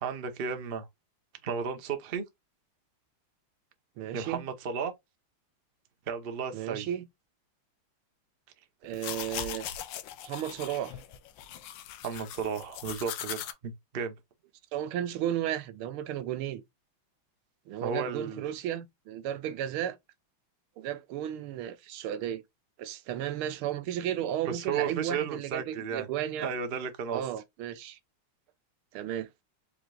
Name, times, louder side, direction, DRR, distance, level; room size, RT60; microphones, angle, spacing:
voice 1, 0.0-0.9 1.4-2.2 4.1-4.9 6.1-6.9 12.0-14.1 17.8-18.4 24.4-26.1 26.4-27.2, right 6 dB, 65° right, 0.5 m, -33 dB
voice 2, 4.0-4.4 6.5-7.1 8.8-9.7 10.2-11.0 14.7-16.6 17.7-20.0 20.8-22.4 22.8-26.5 27.1-28.0 28.9-29.3, right 11 dB, 80° right, 1.6 m, -34 dB
sound 1, 8.8-13.5, left 11 dB, 75° left, 1.2 m, -40 dB
5.0 x 4.0 x 2.3 m
omnidirectional pair, 2.4 m